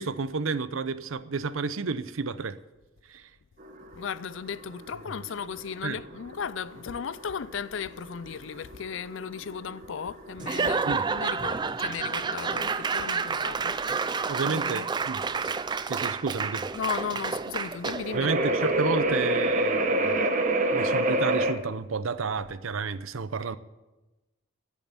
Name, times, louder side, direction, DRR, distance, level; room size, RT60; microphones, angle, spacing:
voice 1, 0.0-2.6 3.1-3.3 5.8-6.0 10.9-11.1 14.3-15.2 15.9-16.6 18.1-20.3 20.7-23.6, right 4 dB, 90° right, 0.7 m, -31 dB
sound 1, 3.6-21.5, right 1 dB, 40° right, 1.1 m, -29 dB
voice 2, 4.0-14.9 16.7-18.4, left 6 dB, 70° left, 0.4 m, -36 dB
Laughter / Applause / Crowd, 10.4-18.2, right 5 dB, 20° right, 0.3 m, -29 dB
12.0 x 7.2 x 9.7 m
head